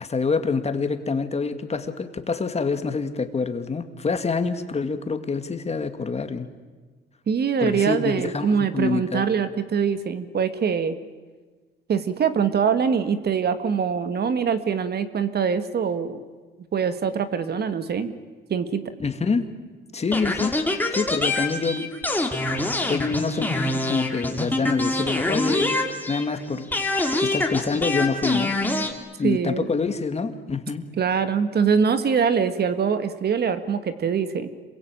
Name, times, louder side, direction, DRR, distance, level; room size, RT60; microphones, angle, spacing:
voice 1, 0.0-6.5 7.6-9.2 19.0-19.5 19.9-20.5 20.9-21.9 22.9-25.8 26.1-26.7 27.2-28.5 29.2-30.8, left 4 dB, 35° left, 8 dB, 2.3 m, -26 dB
voice 2, 7.3-11.0 11.9-16.2 16.7-18.1 18.5-18.9 29.2-29.7 31.0-34.5, right 6 dB, 55° right, 11 dB, 1.8 m, -23 dB
sound 1, 20.1-26.4 26.7-28.9, left 2 dB, 10° left, 3.0 m, -25 dB
27.0 x 22.5 x 9.0 m, 1.3 s
cardioid pair, 90°, 20 cm